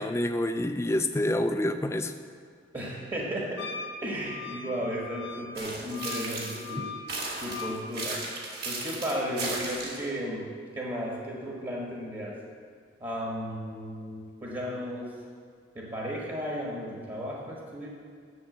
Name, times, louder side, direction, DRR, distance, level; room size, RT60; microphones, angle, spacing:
voice 1, 0.0-2.1, left 1 dB, 15° left, 8 dB, 0.4 m, -27 dB
voice 2, 2.7-3.7 4.0-7.0 7.4-8.2 8.6-12.4 13.0-15.2 15.7-17.9, equal, 25° right, -3 dB, 1.3 m, -34 dB
Wind instrument woodwind instrument, 3.6-7.9, left 5 dB, 65° left, 0.7 m, -41 dB
sound 1, 5.6-6.7 7.1-10.1, right 3 dB, 50° right, 2.1 m, -35 dB
7.9 x 7.1 x 7.7 m, 2.1 s
head